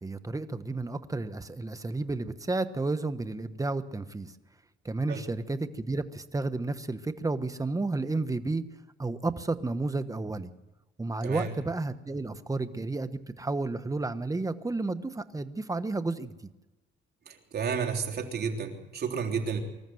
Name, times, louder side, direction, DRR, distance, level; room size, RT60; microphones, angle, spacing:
voice 1, 0.0-4.3 4.8-8.6 9.0-10.5 11.0-16.3, right 3 dB, 15° right, 11 dB, 1.2 m, -32 dB
voice 2, 17.3-19.6, right 6 dB, 55° right, 2 dB, 3.5 m, -31 dB
25.0 x 14.0 x 7.9 m, 1.1 s
cardioid pair, 90°, 20 cm